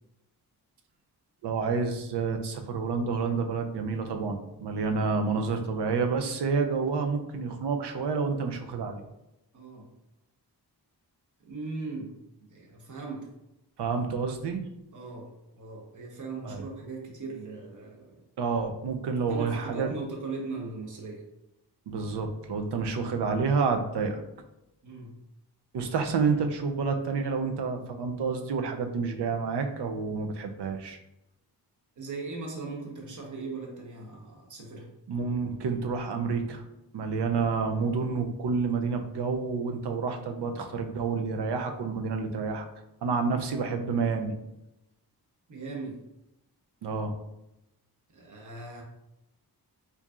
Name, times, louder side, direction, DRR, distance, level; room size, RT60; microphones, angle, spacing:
voice 1, 1.4-9.0 13.8-14.6 16.4-16.6 18.4-19.9 21.9-24.2 25.7-31.0 35.1-36.6 36.9-42.7 43.0-44.3 46.8-47.1, right 5 dB, 80° right, 5 dB, 0.6 m, -29 dB
voice 2, 9.5-9.9 11.4-12.1 12.5-13.3 14.9-18.2 19.3-21.2 24.8-25.1 32.0-34.9 45.5-46.0 48.1-48.8, right 3 dB, 50° right, 0 dB, 0.9 m, -39 dB
4.5 x 2.7 x 2.4 m, 0.90 s
wide cardioid pair, 75°, 40 cm